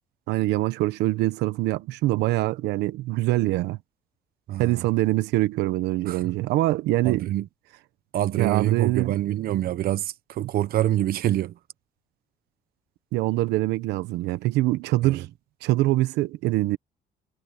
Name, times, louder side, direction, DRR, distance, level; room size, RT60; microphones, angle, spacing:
voice 1, 0.3-3.8 4.6-7.3 8.4-9.2 13.1-15.3 15.6-16.8, right 17 dB, 90° right, 1.1 m, -24 dB
voice 2, 4.5-4.9 6.0-6.3 7.0-7.5 8.1-11.5 15.0-15.2, right 13 dB, 60° right, 1.1 m, -26 dB
cardioid pair, 110°, 17 cm